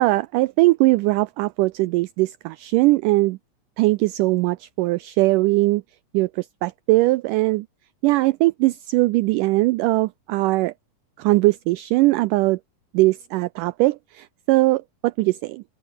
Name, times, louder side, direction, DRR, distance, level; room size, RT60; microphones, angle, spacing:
voice 1, 0.0-3.4 3.8-5.8 6.1-7.7 8.0-10.7 11.2-12.6 12.9-15.6, right 20 dB, 90° right, 1.8 m, -20 dB
open air
omnidirectional pair, 4.3 m